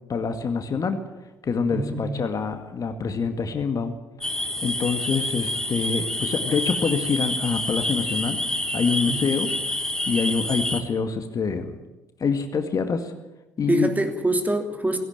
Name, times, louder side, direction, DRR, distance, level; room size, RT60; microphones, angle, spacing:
voice 1, 0.1-1.0 1.4-4.0 4.6-8.4 8.7-9.5 10.1-11.7 12.2-13.1 13.6-13.9, left 5 dB, 40° left, 7 dB, 2.0 m, -25 dB
voice 2, 1.7-2.1 9.1-9.3 13.7-15.0, right 1 dB, 15° right, 6 dB, 3.0 m, -25 dB
sound 1, 4.2-10.8, left 1 dB, 5° left, 3.0 m, -28 dB
17.5 x 17.0 x 9.0 m, 1.1 s
figure-of-eight pair, 45°, 9 cm